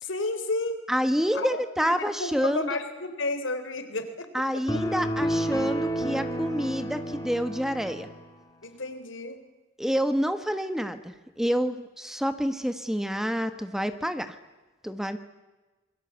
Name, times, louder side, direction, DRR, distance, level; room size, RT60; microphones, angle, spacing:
voice 1, 0.0-0.8 1.3-1.6 1.9-4.3 8.6-9.4, left 2 dB, 85° left, 8 dB, 3.6 m, -31 dB
voice 2, 0.9-2.8 4.3-8.1 9.8-14.3 14.8-15.2, equal, ahead, 10 dB, 1.2 m, -28 dB
sound 1, 4.7-8.2, right 1 dB, 20° left, 2.7 m, -30 dB
27.0 x 22.0 x 8.2 m, 1.2 s
head